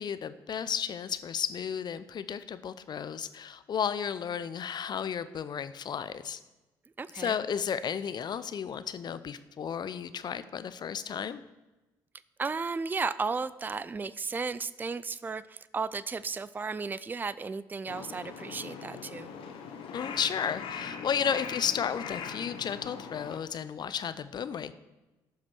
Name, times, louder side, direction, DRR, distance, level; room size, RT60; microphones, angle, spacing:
voice 1, 0.0-6.4 7.1-11.4 19.9-24.7, left 7 dB, 50° left, 14 dB, 0.6 m, -33 dB
voice 2, 7.0-7.4 12.4-19.3, right 4 dB, 20° right, 16 dB, 0.4 m, -34 dB
Crow, 17.9-23.4, left 6 dB, 65° left, 1.0 m, -41 dB
13.5 x 5.8 x 4.5 m, 1.1 s
hypercardioid pair, 55°, 10 cm